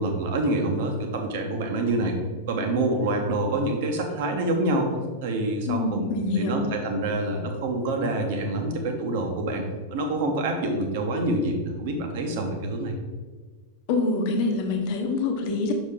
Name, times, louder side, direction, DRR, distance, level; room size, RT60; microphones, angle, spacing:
voice 1, 0.0-2.2 2.5-4.9 5.2-6.1 6.3-9.6 9.9-12.9, right 2 dB, 50° right, 4 dB, 1.1 m, -26 dB
voice 2, 5.7-6.6 13.9-15.7, left 3 dB, 45° left, 3 dB, 1.0 m, -25 dB
6.4 x 5.1 x 3.7 m, 1.4 s
figure-of-eight pair, 90°, 0 cm